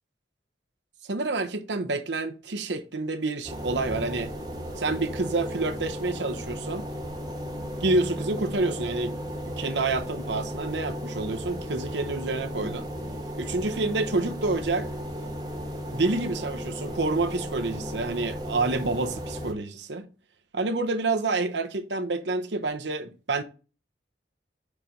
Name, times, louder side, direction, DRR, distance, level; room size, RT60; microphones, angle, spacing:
voice 1, 1.1-4.3 4.8-6.8 7.6-9.2 9.6-12.9 13.3-14.9 15.9-20.1 20.5-23.4, right 3 dB, 75° right, 0.9 m, -28 dB
sound 1, 3.4-19.5, equal, 20° right, 1.0 m, -35 dB
5.7 x 4.9 x 5.2 m
head